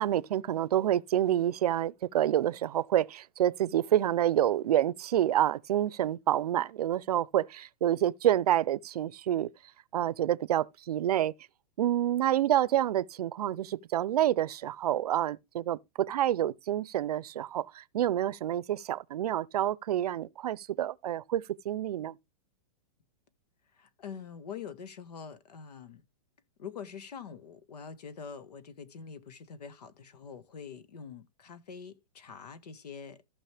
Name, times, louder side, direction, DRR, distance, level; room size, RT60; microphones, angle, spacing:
voice 1, 0.0-9.5 9.9-11.3 11.8-22.1, right 12 dB, 75° right, 0.6 m, -28 dB
voice 2, 23.8-26.0 26.6-33.3, left 6 dB, 80° left, 1.6 m, -45 dB
15.0 x 5.3 x 3.4 m
hypercardioid pair, 170°, 20 cm